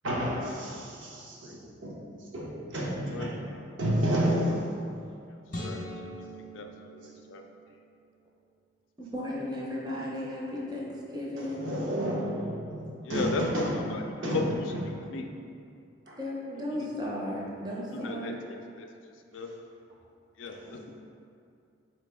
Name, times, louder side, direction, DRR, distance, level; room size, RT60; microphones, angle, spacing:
voice 1, 0.0-3.4 3.8-4.9 5.5-5.9 7.0-7.1 11.4-15.0 16.1-16.2 19.3-19.5, equal, 75° right, -4 dB, 0.8 m, -31 dB
sound 1, 5.5-7.9, equal, 45° left, 0.7 m, -41 dB
voice 2, 5.6-6.1 6.5-7.4 13.0-14.4 15.1-15.2 16.7-16.9 17.9-18.3 18.8-18.9 19.3-19.5 20.4-20.9, left 3 dB, 70° left, 4 dB, 0.4 m, -36 dB
voice 3, 9.1-11.9 16.2-18.3 20.6-20.8, left 1 dB, 20° right, -4 dB, 0.6 m, -35 dB
4.0 x 2.9 x 3.4 m, 2.4 s
head